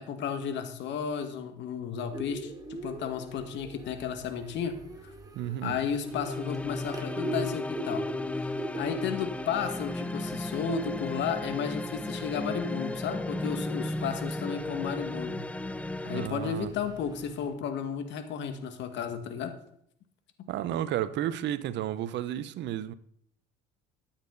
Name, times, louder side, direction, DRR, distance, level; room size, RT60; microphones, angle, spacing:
voice 1, 0.0-2.5 2.8-4.7 5.0-5.1 5.6-8.0 8.4-15.4 16.0-19.5, left 7 dB, 60° left, 2.0 m, -33 dB
sound 1, 2.1-17.5, right 2 dB, 15° right, 2.8 m, -43 dB
voice 2, 5.3-5.8 16.0-16.7 20.5-22.9, right 11 dB, 60° right, 0.9 m, -32 dB
sound 2, 6.0-16.3, left 2 dB, 5° left, 0.3 m, -35 dB
13.5 x 8.9 x 4.1 m
supercardioid pair, 80°, 21 cm